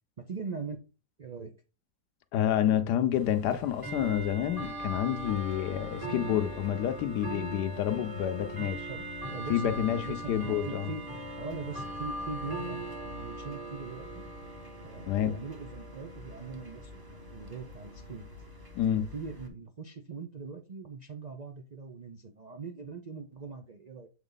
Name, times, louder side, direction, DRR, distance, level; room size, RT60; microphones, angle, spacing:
voice 1, 0.2-0.8 1.2-1.5 8.9-11.0 11.4-14.2 14.8-18.3 19.0-24.1, right 4 dB, 75° right, 0.3 m, -41 dB
voice 2, 2.3-8.9 9.5-10.9 15.1-15.4 18.7-19.1, left 10 dB, 75° left, 1.2 m, -29 dB
Bell / Tick-tock, 3.1-19.5, right 1 dB, 15° right, 0.8 m, -40 dB
7.1 x 4.0 x 3.9 m
omnidirectional pair, 1.8 m